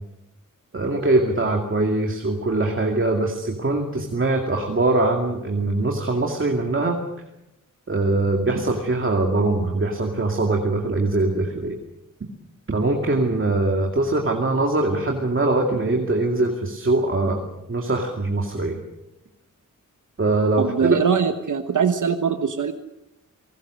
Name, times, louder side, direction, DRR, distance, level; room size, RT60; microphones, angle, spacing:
voice 1, 0.7-7.0 7.9-11.8 12.7-18.8 20.2-21.0, right 2 dB, 40° right, 2 dB, 2.4 m, -22 dB
voice 2, 20.6-22.7, right 6 dB, 65° right, 7 dB, 1.2 m, -22 dB
29.0 x 19.0 x 6.5 m, 0.91 s
wide cardioid pair, 125°, 32 cm